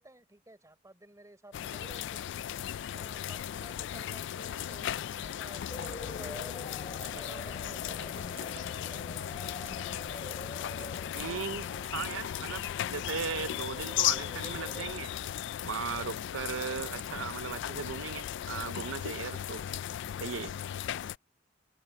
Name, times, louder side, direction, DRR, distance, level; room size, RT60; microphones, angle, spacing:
voice 1, 0.0-2.2 2.9-9.3, right 1 dB, 15° right, 3.9 m, -52 dB
sound 1, 1.5-21.2, left 11 dB, 65° left, 0.3 m, -36 dB
sound 2, 5.7-14.9, left 3 dB, 30° left, 1.0 m, -45 dB
sound 3, 5.8-7.6 8.0-8.9 9.6-10.2 10.7-11.6 12.0-12.2 12.4-12.5 13.1-13.8 14.2-14.3 14.6-15.2 15.5-16.2 16.5-18.0 18.4-19.0 19.5-20.0, right 8 dB, 30° right, 1.3 m, -52 dB
voice 2, 11.1-15.1 15.6-19.6 20.2-20.5, right 6 dB, 85° right, 0.6 m, -37 dB
head